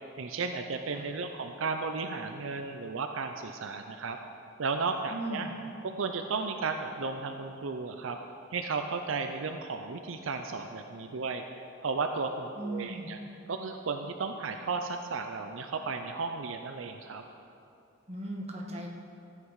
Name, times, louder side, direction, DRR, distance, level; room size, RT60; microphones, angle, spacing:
voice 1, 0.2-4.2 4.6-5.5 5.8-8.2 8.5-11.4 11.8-13.2 13.5-17.2, right 4 dB, 75° right, 5 dB, 0.6 m, -34 dB
voice 2, 5.1-5.6 12.6-13.1 18.1-18.9, right 1 dB, 30° right, -1 dB, 1.4 m, -37 dB
14.0 x 8.5 x 4.8 m, 2.6 s
head